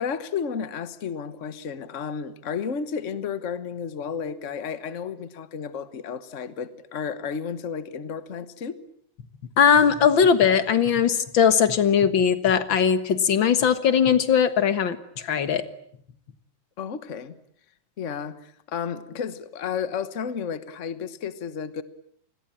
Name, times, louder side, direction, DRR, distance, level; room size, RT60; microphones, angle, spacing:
voice 1, 0.0-8.8 16.8-17.4 18.0-21.8, left 6 dB, 85° left, 13 dB, 0.6 m, -32 dB
voice 2, 9.6-15.6, left 7 dB, 50° left, 11 dB, 1.8 m, -20 dB
28.0 x 21.0 x 8.8 m, 0.67 s
omnidirectional pair, 3.4 m